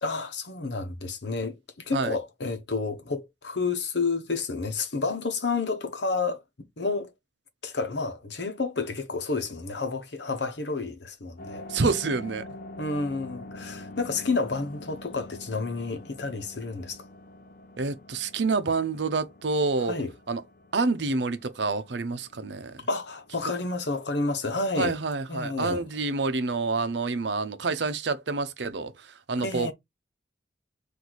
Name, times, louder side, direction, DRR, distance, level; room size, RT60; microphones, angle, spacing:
voice 1, 0.0-6.4 6.8-7.1 7.6-11.6 12.8-17.0 19.8-20.1 22.9-25.0 25.3-25.8 29.4-29.7, left 3 dB, 75° left, 0.9 m, -30 dB
sound 1, 11.4-26.3, left 2 dB, 50° left, 0.5 m, -46 dB
voice 2, 11.7-12.4 17.8-20.0 20.3-20.4 20.7-22.9 24.8-29.7, right 3 dB, 75° right, 0.7 m, -28 dB
4.1 x 2.7 x 4.6 m
head